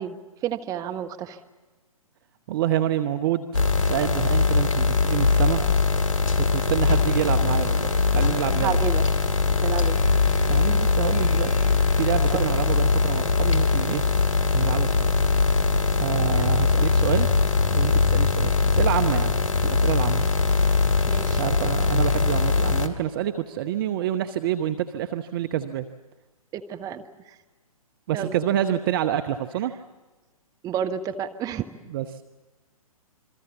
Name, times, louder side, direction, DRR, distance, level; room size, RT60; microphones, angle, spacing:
voice 1, 0.0-1.4 8.5-9.0 9.6-10.0 12.3-12.5 16.3-16.5 21.1-21.4 26.5-27.0 28.1-28.3 30.6-31.7, right 9 dB, 20° right, 7 dB, 1.2 m, -30 dB
voice 2, 2.5-5.6 6.4-8.8 10.5-14.1 14.5-15.1 15.9-17.3 17.7-19.3 19.6-20.2 21.4-25.9 28.1-29.7 31.9-32.2, right 11 dB, 40° right, 10 dB, 0.8 m, -27 dB
sound 1, 3.5-22.9, left 4 dB, 60° left, 2.6 m, -21 dB
27.5 x 22.0 x 7.2 m, 1.2 s
figure-of-eight pair, 120°, 19 cm